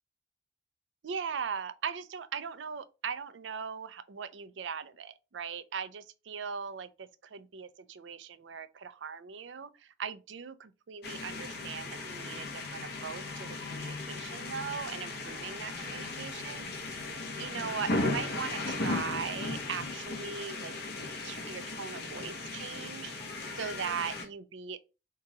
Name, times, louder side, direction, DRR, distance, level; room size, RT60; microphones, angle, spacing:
voice 1, 1.0-17.0 17.4-20.7 21.2-23.1 23.6-24.8, right 6 dB, 75° right, 0.5 m, -39 dB
sound 1, 11.0-24.3, left 2 dB, 60° left, 1.0 m, -37 dB
3.7 x 2.8 x 4.7 m
head